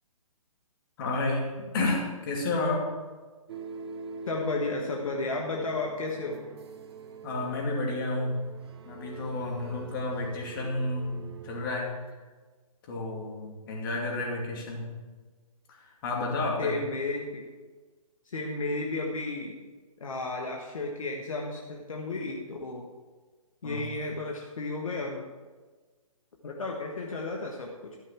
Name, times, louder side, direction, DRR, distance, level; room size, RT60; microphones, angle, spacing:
voice 1, 1.0-2.9 7.2-8.4 8.8-12.0 12.9-14.9 16.0-16.7 23.6-23.8, left 2 dB, 35° left, -1 dB, 2.6 m, -31 dB
sound 1, 3.5-12.1, right 5 dB, 45° right, 0.8 m, -44 dB
voice 2, 4.3-6.4 16.6-17.4 18.2-19.5 20.0-22.9 23.6-25.2 26.4-28.0, left 3 dB, 65° left, 0 dB, 1.4 m, -33 dB
13.0 x 5.5 x 5.9 m, 1.4 s
figure-of-eight pair, 140°, 19 cm